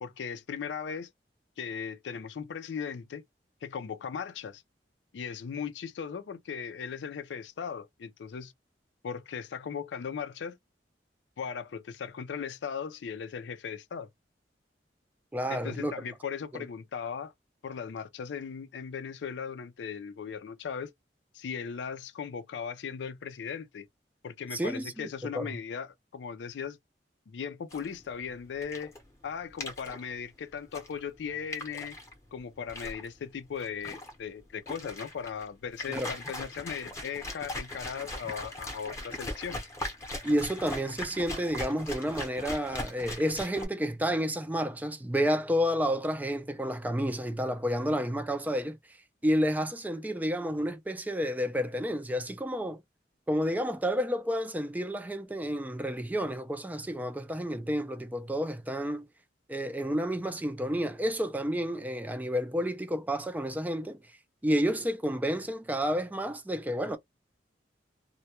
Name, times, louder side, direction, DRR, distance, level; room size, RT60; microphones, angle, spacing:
voice 1, 0.0-1.1 1.6-3.2 3.6-4.6 5.1-8.5 9.0-10.6 11.4-14.1 15.5-17.3 17.6-20.9 21.3-23.9 24.2-26.8 27.3-28.9 29.2-32.0 32.3-39.7, left 6 dB, 85° left, 0.4 m, -38 dB
voice 2, 15.3-15.9 16.5-16.6 24.5-25.1 25.3-25.5 35.9-36.1 40.2-48.8 49.2-52.8 53.3-59.1 59.5-64.0 64.4-67.0, equal, 10° right, 0.3 m, -30 dB
sound 1, 27.7-43.7, left 1 dB, 15° left, 0.7 m, -40 dB
2.2 x 2.1 x 2.8 m
head